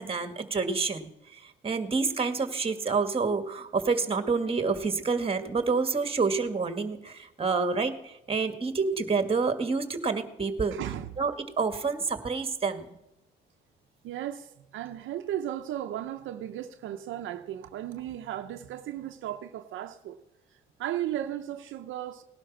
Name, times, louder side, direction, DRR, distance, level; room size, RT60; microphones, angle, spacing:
voice 1, 0.0-10.8 11.2-12.9, right 4 dB, 30° right, 1.9 m, -28 dB
voice 2, 10.7-11.1 14.0-20.2 20.8-22.2, right 12 dB, 80° right, 0.8 m, -35 dB
18.0 x 11.5 x 6.0 m
cardioid pair, 90°, 20 cm